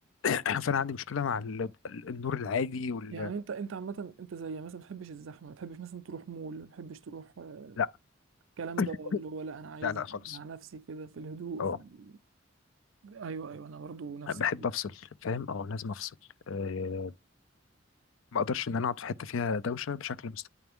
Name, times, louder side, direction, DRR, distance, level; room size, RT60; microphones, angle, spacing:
voice 1, 0.2-3.3 7.8-7.9 8.8-9.2 9.8-10.4 11.6-11.8 14.3-16.1 16.5-17.1 18.3-20.5, left 6 dB, 90° left, 0.5 m, -32 dB
voice 2, 3.1-7.8 8.6-10.0 10.3-12.1 13.0-14.3, right 5 dB, 85° right, 0.5 m, -41 dB
9.2 x 3.4 x 3.5 m
head